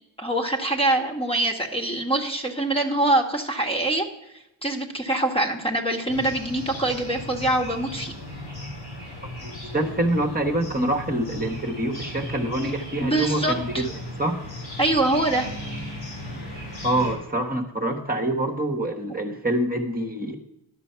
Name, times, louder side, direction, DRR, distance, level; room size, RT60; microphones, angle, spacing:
voice 1, 0.2-4.1 4.6-8.1 13.0-13.9 14.8-15.5, right 2 dB, 10° left, 1 dB, 1.5 m, -24 dB
sound 1, 6.1-17.1, left 1 dB, 80° left, 4.3 m, -36 dB
voice 2, 9.4-13.9 14.2-14.3 16.8-20.4, right 1 dB, 20° right, 1 dB, 1.3 m, -26 dB
11.5 x 6.1 x 5.8 m, 0.89 s
cardioid pair, 60°, 45 cm